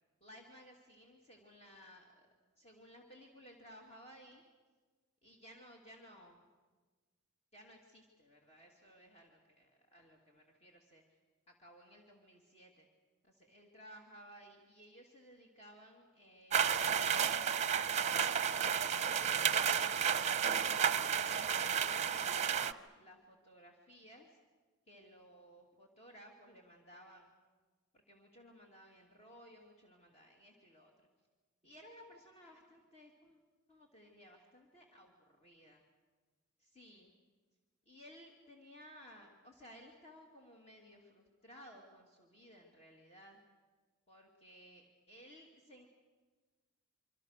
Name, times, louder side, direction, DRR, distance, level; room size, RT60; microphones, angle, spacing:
voice 1, 0.2-2.3 2.6-4.4 5.2-6.4 7.5-11.0 11.5-12.9 13.2-17.8 18.5-20.0 20.4-24.4 24.9-27.3 27.9-30.9 31.6-33.4 33.7-35.1 35.4-35.8 36.6-37.1 37.9-43.4 44.1-45.9, equal, 30° left, 1 dB, 2.6 m, -58 dB
sound 1, 16.5-22.7, right 7 dB, 35° right, 0.8 m, -32 dB
27.0 x 24.5 x 6.6 m, 1.4 s
head